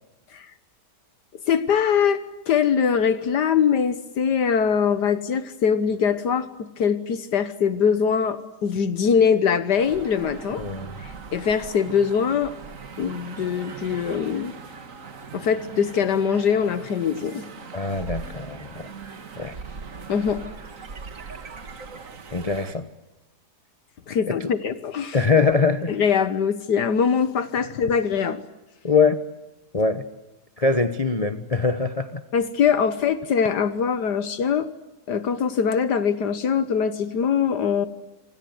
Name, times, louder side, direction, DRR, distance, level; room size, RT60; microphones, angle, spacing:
voice 1, 1.5-10.6 11.0-12.5 13.0-14.5 15.3-17.4 20.1-20.4 24.1-25.2 25.9-28.4 32.3-34.7 35.1-37.9, left 7 dB, 75° left, 12 dB, 1.8 m, -22 dB
sound 1, 9.7-22.7, right 5 dB, 50° right, 2.0 m, -40 dB
voice 2, 10.6-10.9 17.7-18.9 19.4-19.5 22.3-22.9 24.3-24.5 25.1-25.9 28.8-29.2 29.7-30.0 30.6-32.2, left 4 dB, 25° left, 9 dB, 1.0 m, -22 dB
28.0 x 25.5 x 8.0 m, 1.0 s
omnidirectional pair, 1.8 m